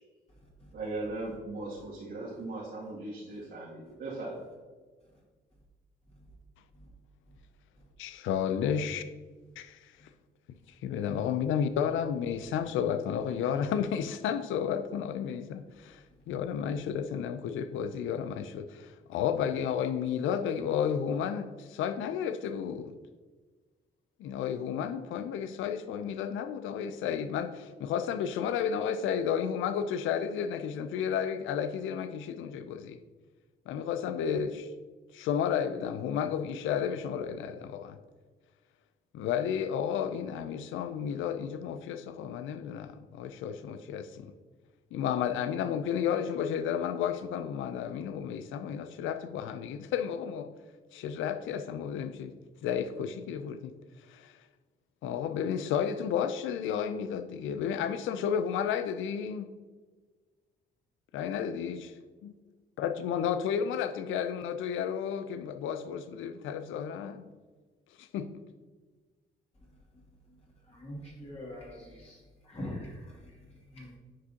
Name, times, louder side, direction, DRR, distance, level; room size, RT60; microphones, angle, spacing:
voice 1, 0.7-4.4, right 2 dB, 75° right, 2.2 m, -38 dB
voice 2, 8.0-9.0 9.6-9.9 10.8-22.9 24.2-33.0 33.7-34.7 35.1-38.0 39.1-44.3 44.9-50.5 50.9-52.3 52.6-53.7 54.1-54.3 55.0-59.5 61.1-61.9 62.2-62.3 62.8-67.2 68.0-68.3, left 8 dB, 80° left, 0.5 m, -32 dB
voice 3, 70.7-72.2 72.4-73.0 73.7-73.9, left 1 dB, 30° left, 2.2 m, -42 dB
9.9 x 5.1 x 2.8 m
cardioid pair, 90°, 20 cm